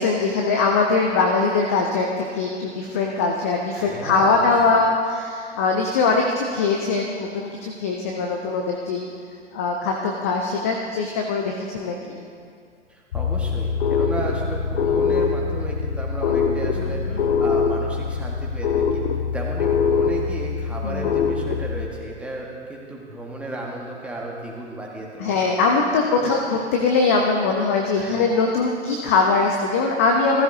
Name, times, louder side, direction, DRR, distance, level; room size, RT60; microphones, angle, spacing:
voice 1, 0.0-9.1 9.5-12.2 16.8-17.2 20.8-21.1 21.3-21.4 25.2-30.4, left 4 dB, 15° left, 1 dB, 0.3 m, -22 dB
voice 2, 3.7-4.5 12.9-19.0 19.3-25.4 26.2-26.4 28.0-28.2, right 2 dB, 5° right, -3 dB, 1.5 m, -34 dB
sound 1, 13.1-21.9, left 5 dB, 55° left, 1.0 m, -23 dB
15.5 x 14.0 x 2.7 m, 2.2 s
figure-of-eight pair, 105°, 36 cm